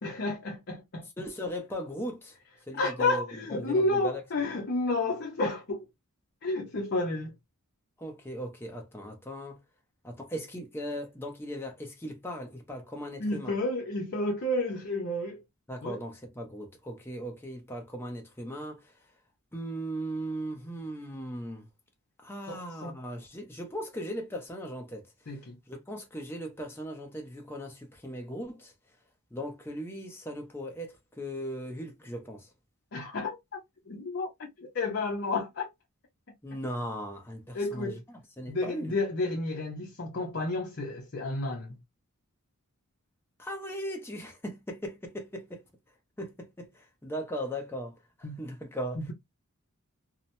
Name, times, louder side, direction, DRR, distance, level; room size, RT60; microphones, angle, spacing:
voice 1, 0.0-1.1 2.8-5.8 6.4-7.3 13.2-15.4 15.8-16.0 22.5-22.9 25.3-25.6 32.9-33.6 33.9-35.7 37.5-38.0 38.5-41.8 48.2-48.4 49.0-49.1, left 2 dB, 50° left, 0.7 m, -31 dB
voice 2, 1.2-2.4 2.7-4.2 8.0-9.6 10.0-13.6 15.7-19.0 19.5-21.7 22.2-25.4 25.7-28.7 29.3-32.5 36.4-38.9 43.4-45.6 46.2-49.1, equal, 10° left, 0.7 m, -38 dB
2.8 x 2.1 x 2.6 m
head